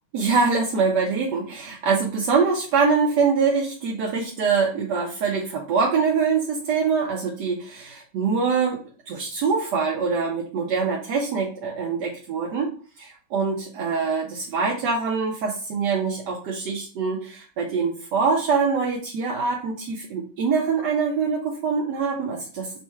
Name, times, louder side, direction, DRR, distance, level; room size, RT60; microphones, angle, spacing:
voice 1, 0.1-8.8 9.1-12.7 13.0-22.8, right 5 dB, 70° right, -1 dB, 1.0 m, -24 dB
4.4 x 2.2 x 4.3 m, 0.41 s
omnidirectional pair, 2.4 m